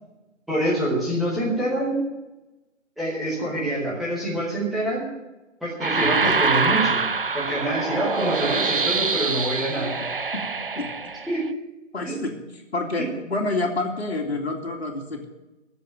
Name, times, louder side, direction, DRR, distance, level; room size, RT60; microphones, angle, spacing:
voice 1, 0.5-2.0 3.0-5.0 5.6-7.0 7.3-10.0 11.3-11.5 12.0-12.2 13.0-13.1, right 1 dB, ahead, -8 dB, 1.1 m, -26 dB
sound 1, 5.8-11.5, right 4 dB, 45° right, 0.4 m, -25 dB
voice 2, 5.9-6.3 10.3-10.4 10.8-10.9 11.9-12.3 12.7-15.3, left 2 dB, 55° left, 2 dB, 2.4 m, -28 dB
14.5 x 7.5 x 7.6 m, 1.0 s
figure-of-eight pair, 150°, 38 cm